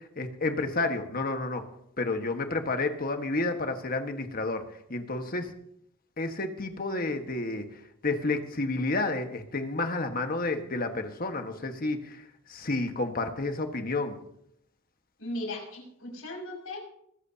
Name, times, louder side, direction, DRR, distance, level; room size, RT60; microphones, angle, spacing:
voice 1, 0.0-1.6 2.0-4.6 4.9-5.5 6.2-7.6 8.0-12.2 12.5-14.2, left 2 dB, 45° left, 6 dB, 1.5 m, -30 dB
voice 2, 15.2-16.8, left 1 dB, 75° left, -1 dB, 6.1 m, -37 dB
23.0 x 14.0 x 2.9 m, 0.74 s
head